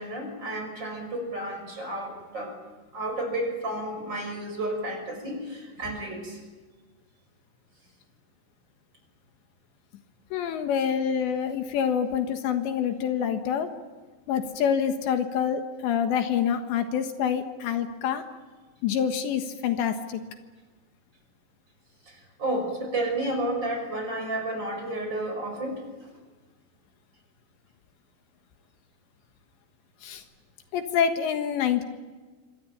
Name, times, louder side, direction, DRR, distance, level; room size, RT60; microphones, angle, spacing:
voice 1, 0.0-2.6 2.9-6.4 22.1-25.8, right 1 dB, 25° right, 5 dB, 6.0 m, -31 dB
voice 2, 10.3-13.7 14.3-18.2 18.8-20.2 30.0-30.2 30.7-31.8, left 8 dB, 75° left, 7 dB, 3.6 m, -26 dB
27.0 x 25.0 x 8.8 m, 1.3 s
omnidirectional pair, 5.3 m